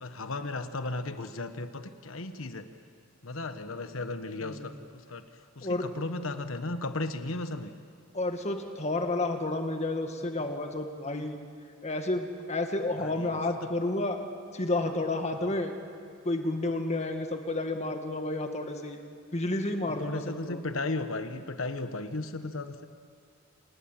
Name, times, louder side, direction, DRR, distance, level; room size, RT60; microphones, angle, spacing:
voice 1, 0.0-2.7 3.2-5.2 5.5-7.7 13.0-13.7 15.4-15.6 20.0-22.9, left 2 dB, 90° left, 9 dB, 1.3 m, -35 dB
voice 2, 8.1-11.4 11.8-14.2 14.5-15.7 16.2-19.0 19.3-20.2 20.5-20.6, left 2 dB, 35° left, 5 dB, 1.9 m, -30 dB
27.5 x 19.5 x 7.5 m, 2.4 s
head